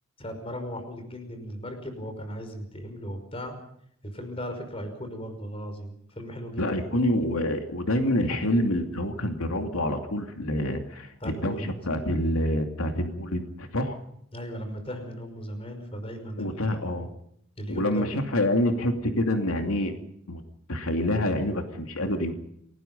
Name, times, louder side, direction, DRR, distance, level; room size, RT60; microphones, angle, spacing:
voice 1, 0.2-3.6 4.1-6.9 11.2-11.7 14.3-16.8 17.6-18.1, equal, 25° left, 7 dB, 5.4 m, -37 dB
voice 2, 6.6-14.0 16.4-17.1 17.7-19.9 20.3-20.4 20.7-22.3, left 1 dB, 90° left, 5 dB, 2.7 m, -27 dB
28.5 x 19.0 x 5.5 m, 0.73 s
head